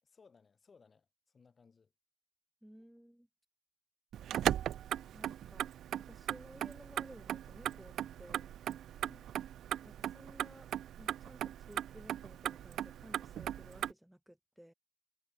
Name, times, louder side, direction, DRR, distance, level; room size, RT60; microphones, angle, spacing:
voice 1, 0.0-1.9 9.0-9.3, left 5 dB, 35° left, 3.1 m, -64 dB
voice 2, 2.6-3.3 5.1-5.7 6.0-8.5 9.7-10.7 11.0-14.7, equal, 5° right, 3.6 m, -56 dB
Motor vehicle (road), 4.1-13.9, right 11 dB, 70° right, 0.3 m, -38 dB
cardioid pair, 90°, 0 cm